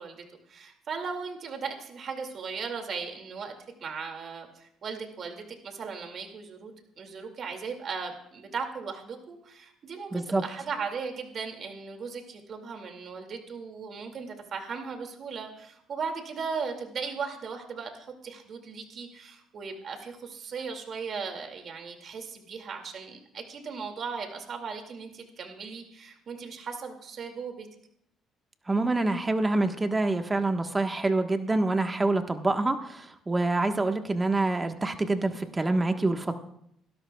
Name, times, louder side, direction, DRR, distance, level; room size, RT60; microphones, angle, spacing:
voice 1, 0.0-3.5 3.8-27.7, right 5 dB, 55° right, 4 dB, 2.3 m, -37 dB
voice 2, 10.1-10.4 28.7-36.3, right 2 dB, 20° right, 6 dB, 1.3 m, -26 dB
26.5 x 13.0 x 2.3 m, 0.73 s
cardioid pair, 80°, 0 cm